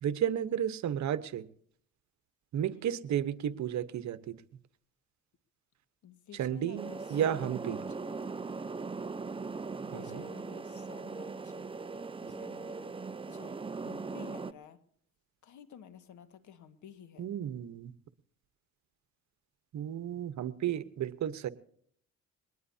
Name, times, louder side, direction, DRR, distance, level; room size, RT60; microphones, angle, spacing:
voice 1, 0.0-1.5 2.5-4.4 6.3-7.8 9.9-10.3 17.2-17.9 19.7-21.5, right 10 dB, 65° right, 13 dB, 1.1 m, -33 dB
voice 2, 2.6-2.9 6.0-8.0 9.8-11.7 12.2-12.9 13.3-14.8 15.4-17.3, left 8 dB, 75° left, 10 dB, 1.8 m, -52 dB
sound 1, 6.8-14.5, right 4 dB, 15° right, 0.7 m, -40 dB
22.0 x 19.0 x 2.8 m, 0.62 s
cardioid pair, 90°, 30 cm